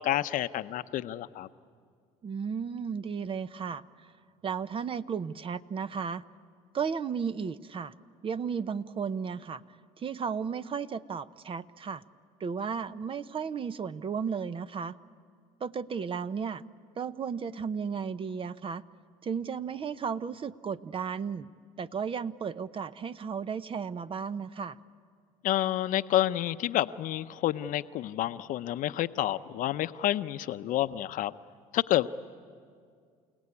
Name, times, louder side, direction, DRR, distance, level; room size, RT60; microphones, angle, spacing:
voice 1, 0.0-1.5 25.4-31.3 31.7-32.1, left 13 dB, 60° left, 13 dB, 0.7 m, -29 dB
voice 2, 2.2-3.8 4.4-6.2 6.7-7.9 8.2-9.6 10.0-12.0 12.4-14.9 15.6-16.6 17.0-18.8 19.2-21.5 21.8-24.8, right 6 dB, 35° right, 15 dB, 0.7 m, -34 dB
29.5 x 17.5 x 9.7 m, 2.2 s
supercardioid pair, 80°, 15 cm